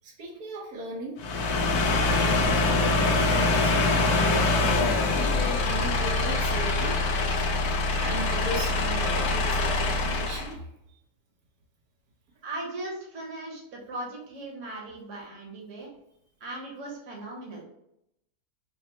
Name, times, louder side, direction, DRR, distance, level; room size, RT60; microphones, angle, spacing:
voice 1, 0.0-1.2 3.1-7.0 7.9-10.7, right 1 dB, 85° right, -1 dB, 1.3 m, -37 dB
sound 1, 1.2-10.5, left 3 dB, 85° left, 1.1 m, -24 dB
voice 2, 12.4-15.9 16.4-17.6, right 2 dB, 60° right, -2 dB, 1.3 m, -38 dB
5.1 x 2.0 x 3.0 m, 0.79 s
omnidirectional pair, 1.6 m